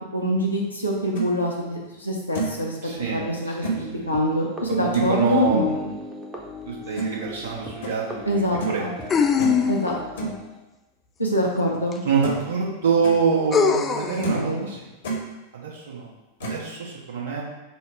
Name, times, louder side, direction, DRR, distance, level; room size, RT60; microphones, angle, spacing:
voice 1, 0.1-2.8 3.1-5.7 8.3-8.9 9.7-10.3 11.2-12.0 14.3-14.7, equal, 85° left, -3 dB, 0.6 m, -25 dB
sound 1, 0.9-1.3 1.8-1.9 2.3-2.6 3.6-3.8 4.9-5.2 7.0-7.1 7.8-8.0 8.6-8.8 9.4-9.7 10.2-10.4 11.7-11.8 12.2-12.5 12.8-13.2 13.7-13.8 14.2-14.5 14.8-15.2 16.4-16.7, right 3 dB, 60° left, 0.8 m, -29 dB
voice 2, 2.8-4.1 4.7-5.9 6.6-9.7 12.0-14.9 15.5-16.1 16.4-17.4, right 5 dB, 65° right, -3 dB, 0.9 m, -26 dB
sound 2, 3.0-10.6, left 3 dB, 15° right, 0.7 m, -38 dB
sound 3, 7.0-7.1 9.1-10.0 11.9-12.0 13.5-14.2, left 6 dB, 25° left, 0.3 m, -21 dB
5.5 x 2.0 x 4.4 m, 1.0 s
figure-of-eight pair, 90°, 0 cm